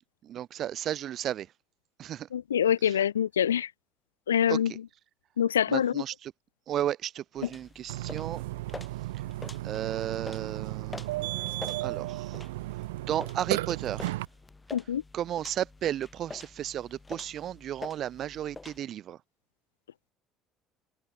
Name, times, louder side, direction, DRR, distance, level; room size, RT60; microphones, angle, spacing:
voice 1, 0.2-1.5 2.0-2.3 2.8-3.0 4.5-4.8 5.7-6.3 6.7-8.4 9.6-12.4 13.0-14.1 15.1-19.2, right 11 dB, 55° right, 0.8 m, -34 dB
voice 2, 2.3-3.7 4.3-4.7 5.4-6.0 14.7-15.0, left 9 dB, 90° left, 0.7 m, -25 dB
sound 1, 7.4-18.8, left 3 dB, 20° left, 6.5 m, -47 dB
Burping eructation, 7.9-14.3, right 18 dB, 80° right, 0.9 m, -34 dB
hypercardioid pair, 60°, 0 cm